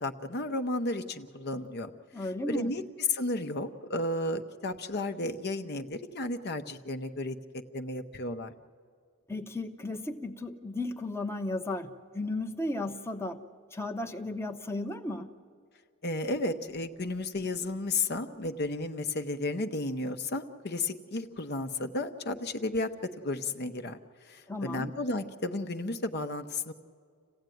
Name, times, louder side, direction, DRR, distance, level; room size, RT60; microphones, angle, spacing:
voice 1, 0.0-1.9 2.2-7.4 7.7-8.5 16.0-22.9 23.2-24.0 24.3-26.7, left 2 dB, 50° left, 7 dB, 0.9 m, -33 dB
voice 2, 2.1-2.7 9.3-13.4 13.7-15.3 24.5-24.9, left 2 dB, 10° left, 4 dB, 0.9 m, -34 dB
27.0 x 16.0 x 9.2 m, 2.2 s
head